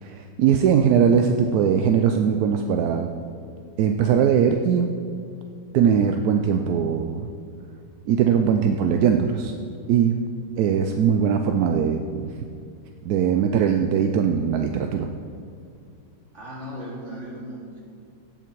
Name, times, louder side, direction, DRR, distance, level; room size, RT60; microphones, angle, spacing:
voice 1, 0.0-3.1 3.8-4.9 5.7-7.3 8.1-9.5 9.9-10.2 10.6-12.3 13.1-15.1, right 7 dB, 70° right, 5 dB, 0.9 m, -20 dB
voice 2, 16.3-17.8, equal, 40° right, -4 dB, 2.7 m, -36 dB
17.0 x 5.9 x 4.6 m, 2.3 s
omnidirectional pair, 1.9 m